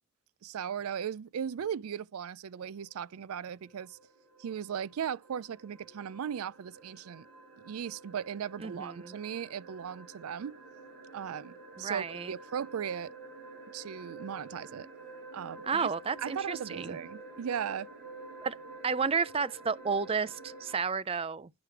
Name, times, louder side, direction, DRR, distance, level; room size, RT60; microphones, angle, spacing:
voice 1, 0.4-4.0 4.4-7.3 7.6-10.5 11.1-13.1 13.7-14.9 15.3-15.9 16.2-17.9, right 8 dB, 85° right, 0.4 m, -37 dB
sound 1, 2.5-20.8, right 3 dB, 50° right, 4.6 m, -50 dB
voice 2, 8.6-9.2 11.8-12.3 15.6-17.0 18.4-18.6 18.8-21.5, right 5 dB, 25° right, 0.4 m, -32 dB
10.0 x 4.9 x 4.6 m
head